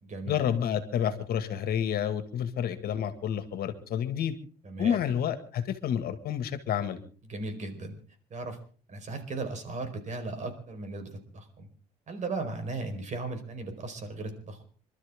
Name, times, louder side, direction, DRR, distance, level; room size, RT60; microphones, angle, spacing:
voice 1, 0.3-4.3 4.8-7.0, left 9 dB, 65° left, 11 dB, 2.1 m, -29 dB
voice 2, 4.6-5.0 7.3-8.0 8.3-8.6 8.9-11.7 12.1-14.7, right 3 dB, 45° right, 7 dB, 4.7 m, -36 dB
27.5 x 12.5 x 3.7 m, 0.40 s
cardioid pair, 110°, 17 cm